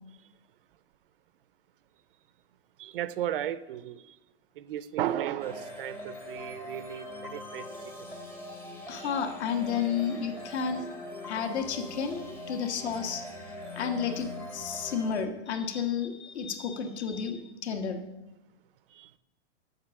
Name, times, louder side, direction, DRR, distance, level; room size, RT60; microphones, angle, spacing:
voice 1, 2.8-4.2 4.6-7.7 8.9-9.1 18.9-19.1, right 11 dB, 50° right, 0.5 m, -35 dB
sound 1, 5.4-15.2, left 1 dB, 5° left, 0.7 m, -42 dB
voice 2, 8.9-10.9 11.2-13.2 13.7-18.0, left 7 dB, 65° left, 1.5 m, -32 dB
8.0 x 6.6 x 7.5 m
hypercardioid pair, 160°, 36 cm